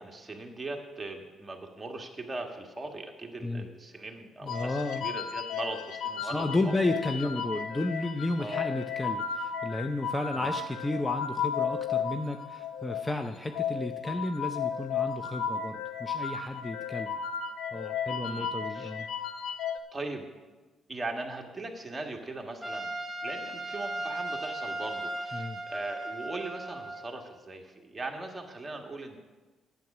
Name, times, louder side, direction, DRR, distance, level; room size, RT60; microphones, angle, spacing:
voice 1, 0.0-6.7 7.2-7.3 8.4-8.7 10.3-10.5 18.2-18.9 19.9-20.3 20.9-22.9 23.2-29.2, right 2 dB, 20° right, 2 dB, 1.6 m, -39 dB
voice 2, 4.4-5.0 6.2-17.2 17.7-19.1 25.3-25.6, left 2 dB, 15° left, 7 dB, 0.5 m, -32 dB
sound 1, 4.5-19.8, left 7 dB, 85° left, 0.6 m, -34 dB
Trumpet, 22.6-27.2, right 1 dB, ahead, 1.4 m, -36 dB
9.3 x 8.2 x 6.0 m, 1.3 s
cardioid pair, 90°, 0 cm